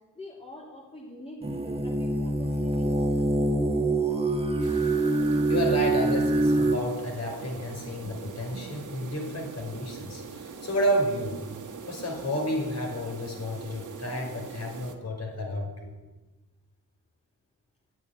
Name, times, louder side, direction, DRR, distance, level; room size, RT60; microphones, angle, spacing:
voice 1, 0.1-3.1, left 1 dB, 20° left, -5 dB, 3.4 m, -45 dB
sound 1, 1.4-6.8, right 2 dB, 20° right, 2.0 m, -25 dB
sound 2, 4.6-15.0, right 5 dB, 75° right, 1.5 m, -42 dB
voice 2, 5.5-11.4 11.9-15.9, equal, 55° left, 2 dB, 5.2 m, -31 dB
10.5 x 9.5 x 9.9 m, 1.2 s
cardioid pair, 60°, 31 cm